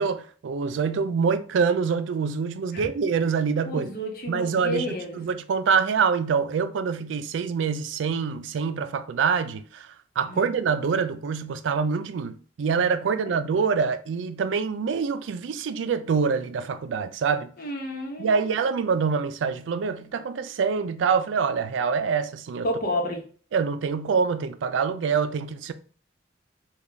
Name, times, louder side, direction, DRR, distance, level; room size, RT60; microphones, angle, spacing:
voice 1, 0.0-3.9 4.3-4.9 5.1-17.5 18.2-22.7 23.5-25.7, right 5 dB, 85° right, 0.4 m, -25 dB
voice 2, 3.6-5.2 10.3-10.5 17.6-18.6 22.6-23.2, left 1 dB, 50° left, 0.9 m, -31 dB
3.4 x 2.3 x 3.8 m
head